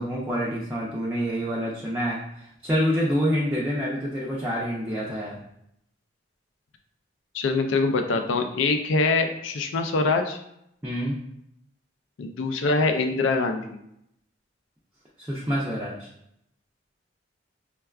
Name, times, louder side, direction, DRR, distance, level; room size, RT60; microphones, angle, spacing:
voice 1, 0.0-2.2 2.6-5.4 10.8-11.2 15.2-16.1, equal, 10° right, -6 dB, 0.4 m, -27 dB
voice 2, 7.3-10.4 12.2-13.8, left 3 dB, 75° left, 6 dB, 0.4 m, -24 dB
4.5 x 2.2 x 2.3 m, 0.77 s
head